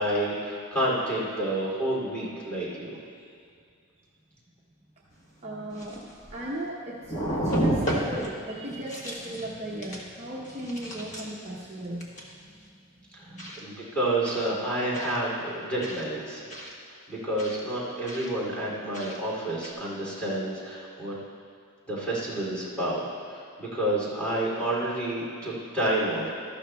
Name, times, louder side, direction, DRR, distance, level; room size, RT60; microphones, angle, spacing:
voice 1, 0.0-3.0 13.2-13.3 13.6-16.5 17.1-21.1 21.9-23.0 23.3-26.3, right 1 dB, 5° left, -7 dB, 2.7 m, -29 dB
sound 1, 5.2-5.3 5.7-6.7 7.0-8.3 8.7-9.5 9.8-10.1 10.4-11.5 12.0-12.3 13.4-13.6 14.3-14.5 14.9-15.2 15.8-16.0 16.5-16.7 17.4-17.6 18.1-18.3 18.9-19.2 19.6-19.7, right 1 dB, 35° left, 1.3 m, -31 dB
voice 2, 5.4-12.8 13.2-13.5, right 1 dB, 30° right, -5 dB, 0.8 m, -37 dB
13.5 x 12.0 x 2.3 m, 2.3 s
head